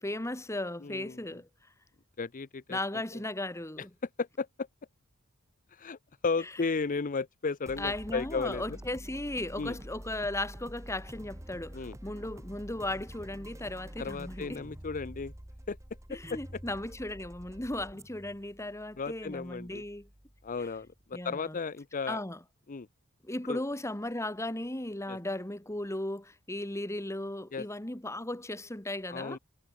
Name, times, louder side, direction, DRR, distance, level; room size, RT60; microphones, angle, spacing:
voice 1, 0.0-1.5 2.7-3.9 7.8-14.6 16.1-20.1 20.6-20.7 21.1-21.6 22.1-22.4 23.2-29.4, left 1 dB, 15° left, 1.9 m, -36 dB
voice 2, 0.8-1.2 2.2-2.8 3.8-3.9 4.2-4.7 5.7-6.0 6.2-8.8 9.6-9.8 11.7-12.0 14.0-15.3 15.7-15.8 16.1-16.4 19.0-19.8 20.4-22.2 22.7-22.9 23.5-23.6 25.1-25.2 27.5-27.7 29.1-29.4, left 4 dB, 40° left, 0.6 m, -34 dB
sound 1, 7.7-21.0, equal, 15° right, 1.4 m, -47 dB
head